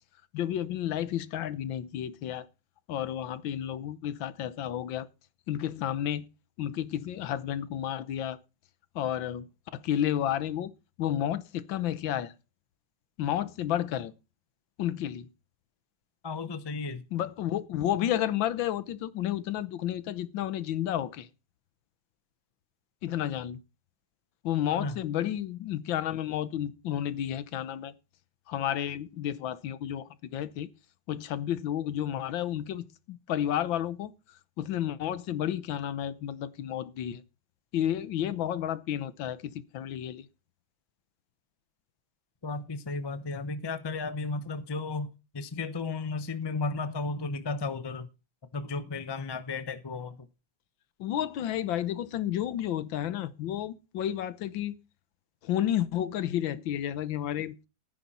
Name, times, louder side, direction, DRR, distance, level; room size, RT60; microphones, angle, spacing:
voice 1, 0.3-2.5 2.9-5.1 5.5-6.2 6.6-8.4 8.9-9.5 9.7-10.7 11.0-12.3 13.2-14.1 14.8-15.3 17.1-21.3 23.0-23.6 24.4-27.9 28.5-30.7 31.1-34.1 34.6-37.2 37.7-40.3 51.0-54.7 55.4-57.6, left 11 dB, 75° left, 1.6 m, -31 dB
voice 2, 16.2-17.0 24.7-25.0 42.4-48.1 48.5-50.3, left 3 dB, 25° left, 0.5 m, -34 dB
14.5 x 9.6 x 4.2 m
omnidirectional pair, 2.1 m